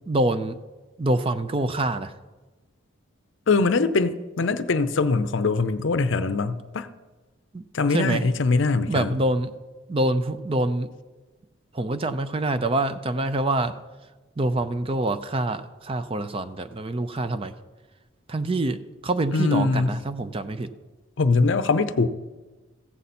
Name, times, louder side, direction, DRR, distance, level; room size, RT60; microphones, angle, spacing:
voice 1, 0.1-0.6 1.0-2.1 7.5-7.6 7.9-8.2 8.9-9.5 9.9-10.9 11.7-13.7 14.4-17.5 18.3-20.7, right 2 dB, 25° right, 11 dB, 0.5 m, -25 dB
voice 2, 3.5-6.9 7.7-9.1 19.3-19.9 21.2-22.1, left 3 dB, 65° left, 12 dB, 0.6 m, -22 dB
15.0 x 8.1 x 4.2 m, 1.2 s
head